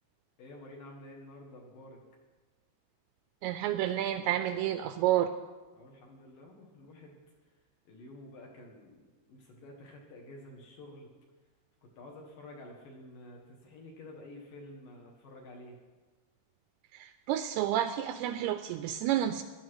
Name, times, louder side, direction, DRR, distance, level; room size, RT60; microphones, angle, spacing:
voice 1, 0.4-2.0 5.7-7.2 7.9-9.0 9.3-11.1 11.8-15.8, left 1 dB, 60° left, 0 dB, 2.9 m, -50 dB
voice 2, 3.4-5.3 16.9-19.4, right 12 dB, 85° right, 10 dB, 2.4 m, -30 dB
15.5 x 11.0 x 4.7 m, 1.3 s
omnidirectional pair, 4.9 m